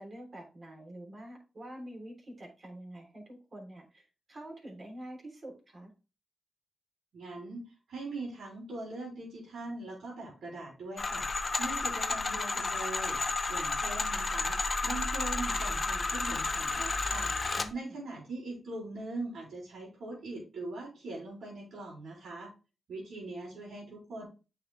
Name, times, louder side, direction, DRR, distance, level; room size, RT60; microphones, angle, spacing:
voice 1, 0.0-5.9 17.6-18.0, right 1 dB, 45° right, -1 dB, 3.4 m, -46 dB
voice 2, 7.1-7.6 7.9-13.2 13.5-22.5 22.9-24.2, right 2 dB, 80° right, -4 dB, 3.6 m, -41 dB
sound 1, 11.0-17.7, left 3 dB, 40° left, 0.8 m, -32 dB
8.9 x 5.5 x 2.3 m, 0.31 s
cardioid pair, 60°, 0 cm